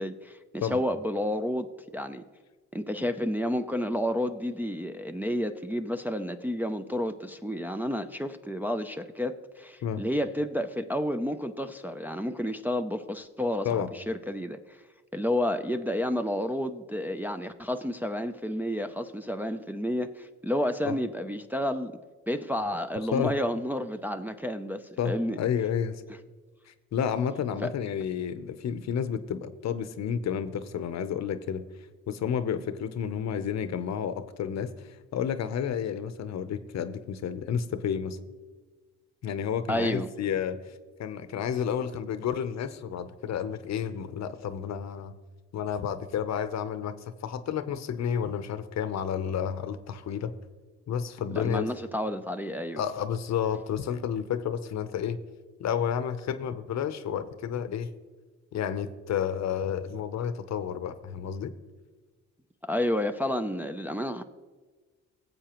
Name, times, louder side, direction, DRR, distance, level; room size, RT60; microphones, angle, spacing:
voice 1, 0.0-1.7 1.9-2.2 2.7-14.8 15.1-21.9 22.3-25.4 27.6-27.7 39.7-40.1 51.3-52.8 62.7-64.2, equal, 5° right, 6 dB, 0.4 m, -30 dB
voice 2, 25.0-26.0 26.7-31.7 32.1-38.2 39.2-40.7 41.0-45.1 45.5-46.9 47.2-50.3 50.9-51.7 52.8-55.2 55.6-57.9 58.5-61.5, left 8 dB, 60° left, 12 dB, 0.8 m, -31 dB
17.5 x 7.8 x 3.0 m, 1.3 s
cardioid pair, 90°, 30 cm